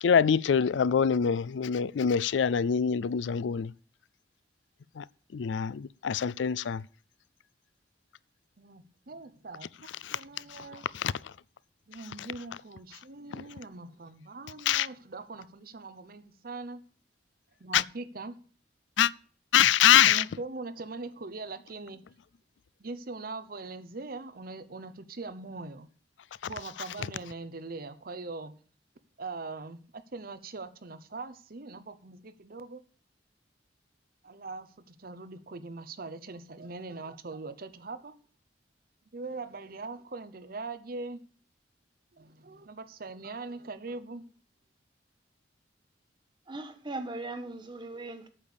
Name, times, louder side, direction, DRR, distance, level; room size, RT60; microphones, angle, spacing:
voice 1, 0.0-3.7 5.0-5.1 5.3-6.8 10.0-10.2 10.5-10.6 10.9-11.1 14.7-14.9 17.7-17.8 19.0-19.1 19.5-20.2, left 8 dB, 85° left, 0.4 m, -24 dB
voice 2, 8.6-10.9 11.9-16.8 17.6-18.4 20.1-22.0 22.8-25.9 26.5-28.6 29.2-32.8 34.2-38.1 39.1-41.2 42.1-44.2, right 3 dB, 55° right, 0.9 m, -41 dB
voice 3, 46.5-48.3, right 2 dB, 25° right, 1.4 m, -39 dB
8.8 x 6.8 x 8.2 m
head